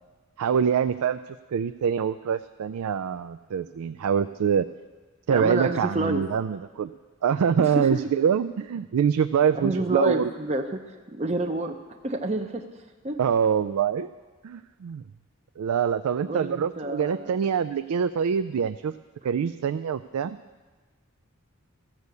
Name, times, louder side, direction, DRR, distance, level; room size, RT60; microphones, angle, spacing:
voice 1, 0.4-4.7 5.3-6.9 7.2-10.3 13.2-14.1 14.4-15.1 15.6-18.9 19.2-20.4, right 7 dB, 90° right, 11 dB, 0.4 m, -25 dB
voice 2, 5.3-6.2 7.6-7.9 9.6-10.8 11.1-11.7 12.0-12.6 13.0-13.2 16.3-17.4, right 2 dB, 30° right, 4 dB, 0.7 m, -28 dB
14.5 x 6.6 x 8.2 m, 1.3 s
head